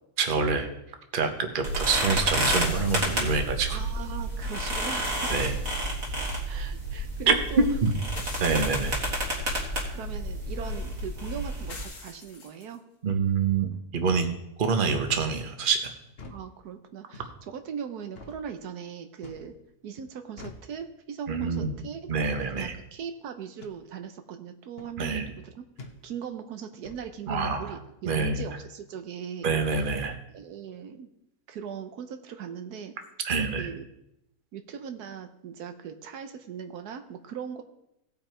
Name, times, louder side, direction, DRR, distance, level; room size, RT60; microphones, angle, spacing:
voice 1, 0.2-0.7 1.1-3.8 5.3-5.6 7.3-7.4 7.8-7.9 8.4-9.0 13.0-14.3 14.6-15.8 21.3-21.8 22.1-22.7 25.0-25.3 27.3-27.8 28.1-28.4 29.4-30.2 33.2-33.7, right 5 dB, 40° right, 6 dB, 1.0 m, -26 dB
sound 1, 1.6-11.8, right 1 dB, 60° right, 2.6 m, -30 dB
sound 2, 2.5-3.7 5.0-6.2 6.5-6.6 8.1-9.4 11.7-12.8, left 3 dB, 70° left, 1.9 m, -44 dB
voice 2, 3.7-5.4 6.4-7.7 9.9-12.8 16.2-19.5 19.8-22.1 22.5-25.6 26.0-29.5 30.3-31.1 31.5-32.9 33.6-33.9 34.5-37.6, right 7 dB, 85° right, 7 dB, 1.4 m, -39 dB
sound 3, 15.1-15.4 16.1-16.4 17.1-17.4 18.1-18.4 19.2-19.5 20.4-20.7 21.5-21.8 22.6-22.8 23.6-23.8 24.8-25.0 25.8-26.0 26.8-27.1, left 3 dB, 45° left, 1.1 m, -45 dB
16.5 x 5.7 x 4.4 m, 0.85 s
omnidirectional pair, 1.6 m